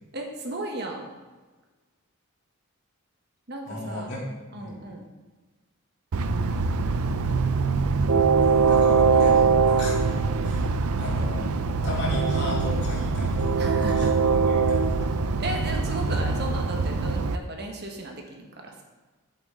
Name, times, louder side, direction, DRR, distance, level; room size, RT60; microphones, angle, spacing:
voice 1, 0.1-1.1 3.5-4.1 4.5-5.0 8.1-8.3 13.6-14.3 15.0-18.7, right 1 dB, 50° right, 1 dB, 1.4 m, -35 dB
voice 2, 3.7-4.2 4.5-4.8 8.4-10.0 10.4-11.5 11.8-15.4, left 1 dB, 50° left, -5 dB, 3.2 m, -36 dB
Train, 6.1-17.4, right 4 dB, 80° right, 0.5 m, -23 dB
11.0 x 8.3 x 3.8 m, 1.3 s
head